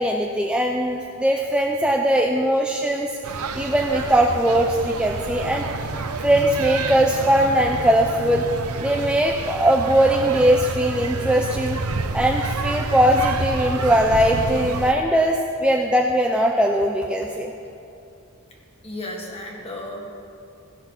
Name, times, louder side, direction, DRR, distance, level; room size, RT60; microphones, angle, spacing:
voice 1, 0.0-3.1 3.6-5.7 6.2-8.5 8.8-11.8 12.1-17.5, right 1 dB, 5° right, 1 dB, 0.4 m, -20 dB
sound 1, 3.2-14.9, right 3 dB, 85° right, 0.7 m, -29 dB
voice 2, 18.8-20.0, left 1 dB, 30° left, -1 dB, 1.7 m, -34 dB
16.5 x 6.0 x 5.6 m, 2.6 s
head